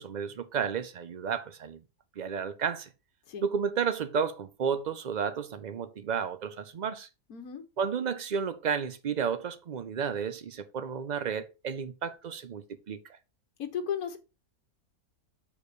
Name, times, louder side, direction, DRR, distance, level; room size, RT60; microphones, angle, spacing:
voice 1, 0.0-1.8 2.2-2.9 3.4-7.1 7.8-13.0, right 6 dB, 90° right, 0.4 m, -32 dB
voice 2, 7.3-7.6 13.6-14.2, left 8 dB, 75° left, 1.5 m, -34 dB
6.8 x 4.7 x 4.9 m
omnidirectional pair, 1.6 m